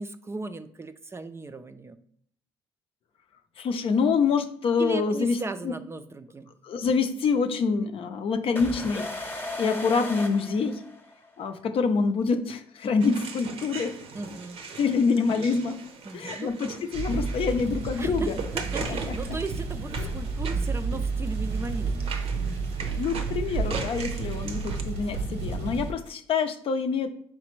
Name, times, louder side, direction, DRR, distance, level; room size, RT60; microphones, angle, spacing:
voice 1, 0.0-2.0 4.8-6.5 14.1-14.6 16.0-16.5 18.0-22.2, right 3 dB, 25° right, 10 dB, 0.4 m, -36 dB
voice 2, 3.6-5.4 6.6-10.8 11.4-14.0 14.8-15.8 16.1-18.3 18.9-19.1 22.9-27.1, left 5 dB, 55° left, 7 dB, 0.5 m, -26 dB
sound 1, 8.6-11.3, left 2 dB, 20° left, 0.9 m, -36 dB
sound 2, 13.0-24.8, right 5 dB, 60° right, 0.7 m, -40 dB
sound 3, 16.9-25.9, right 4 dB, 80° right, 1.0 m, -31 dB
4.9 x 3.2 x 3.1 m, 0.63 s
supercardioid pair, 65°, 11 cm